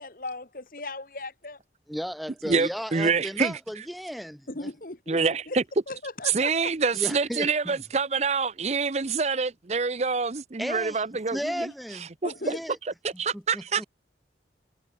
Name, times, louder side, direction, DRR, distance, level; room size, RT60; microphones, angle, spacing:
voice 1, 0.0-1.6 4.5-5.2 5.5-5.6 5.9-6.7 12.2-12.6, left 2 dB, 50° left, 1.8 m, -37 dB
voice 2, 1.9-4.7 6.9-7.8 10.6-12.1 12.4-12.8 13.3-13.8, equal, ahead, 0.7 m, -35 dB
voice 3, 2.5-3.6 5.1-5.6 6.2-11.7 12.2-12.3 13.0-13.8, right 5 dB, 40° right, 0.6 m, -26 dB
head